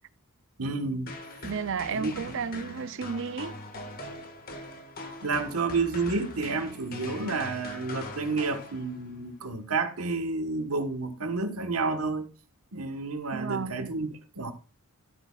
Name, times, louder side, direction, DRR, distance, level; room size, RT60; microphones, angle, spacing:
voice 1, 0.6-1.1 1.9-2.1 5.2-12.3 12.7-14.1 14.4-14.5, right 3 dB, 90° right, 1.4 m, -30 dB
sound 1, 1.1-9.2, left 2 dB, 45° left, 1.7 m, -41 dB
voice 2, 1.4-3.5 13.3-13.9, right 5 dB, 60° right, 0.5 m, -33 dB
12.5 x 8.3 x 2.4 m
head